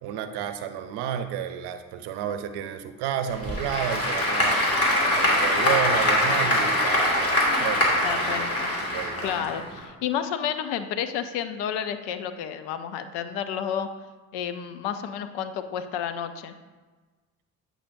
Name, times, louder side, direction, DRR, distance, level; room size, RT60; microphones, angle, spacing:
voice 1, 0.0-4.7 5.1-8.4 8.8-9.4, right 9 dB, 75° right, 9 dB, 0.6 m, -31 dB
Applause / Crowd, 3.3-9.8, left 1 dB, 35° left, 2.1 m, -23 dB
voice 2, 8.0-8.7 9.2-13.9 14.3-16.5, left 8 dB, 75° left, 10 dB, 0.6 m, -31 dB
8.6 x 5.0 x 2.6 m, 1.3 s
hypercardioid pair, 50°, 40 cm